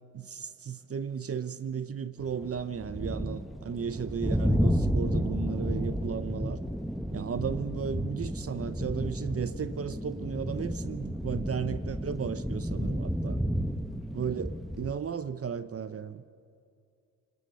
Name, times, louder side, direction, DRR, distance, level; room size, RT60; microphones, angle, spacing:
voice 1, 0.1-6.6 7.1-13.4 14.1-16.2, right 7 dB, 40° right, 0.9 m, -35 dB
sound 1, 2.2-14.9, equal, ahead, 1.2 m, -31 dB
27.5 x 20.5 x 5.6 m
supercardioid pair, 65°, 34 cm